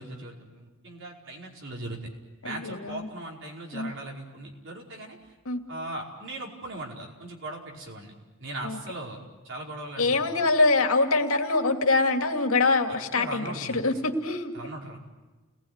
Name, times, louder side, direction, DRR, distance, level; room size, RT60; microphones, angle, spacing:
voice 1, 0.0-2.0 2.4-5.2 5.7-8.1 8.4-10.3 13.1-13.8 14.5-15.0, right 2 dB, 60° right, -1 dB, 5.1 m, -39 dB
voice 2, 2.4-3.1 3.7-3.9 5.5-5.6 8.6-8.8 10.0-14.5, left 3 dB, 80° left, 4 dB, 2.5 m, -24 dB
29.5 x 20.0 x 9.6 m, 1.2 s
head